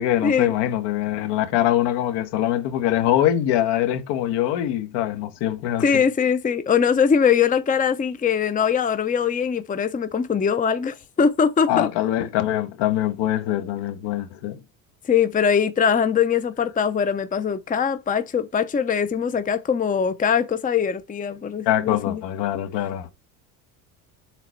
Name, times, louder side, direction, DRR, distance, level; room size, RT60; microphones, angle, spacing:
voice 1, 0.0-6.0 11.7-14.6 21.6-23.1, left 12 dB, 70° left, 1.6 m, -23 dB
voice 2, 5.8-11.9 15.1-22.2, left 7 dB, 20° left, 0.7 m, -22 dB
7.1 x 4.1 x 4.5 m
supercardioid pair, 90°, 43 cm